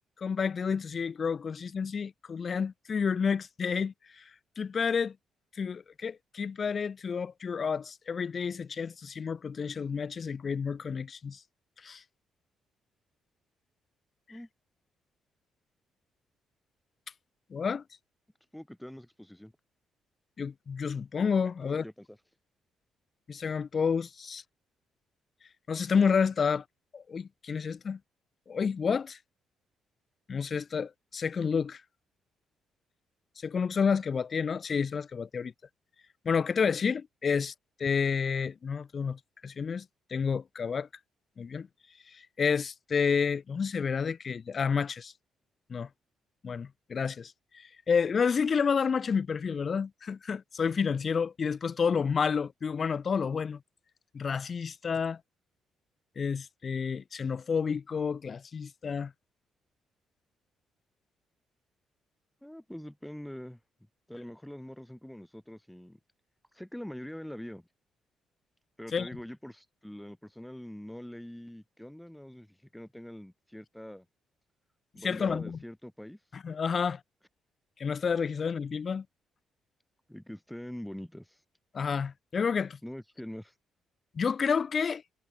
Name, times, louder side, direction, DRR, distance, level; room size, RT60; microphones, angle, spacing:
voice 1, 0.2-4.3 4.6-5.1 5.5-11.4 11.8-12.0 17.5-17.8 20.4-21.8 23.3-24.4 25.7-26.6 26.9-28.0 28.5-29.2 30.3-31.8 33.4-35.5 36.3-37.5 37.8-40.9 41.4-41.7 42.1-45.1 45.7-45.9 46.4-53.6 54.1-55.2 56.2-59.1 68.9-69.1 75.0-75.6 76.3-77.0 77.8-79.0 81.7-82.8 84.1-85.0, left 6 dB, 45° left, 0.4 m, -30 dB
voice 2, 18.5-19.5 21.6-22.2 37.4-37.5 62.4-63.6 64.1-66.0 66.5-67.7 68.8-74.1 74.9-76.2 80.1-81.4 82.8-83.5, equal, 5° left, 3.5 m, -44 dB
cardioid pair, 95°, 0 cm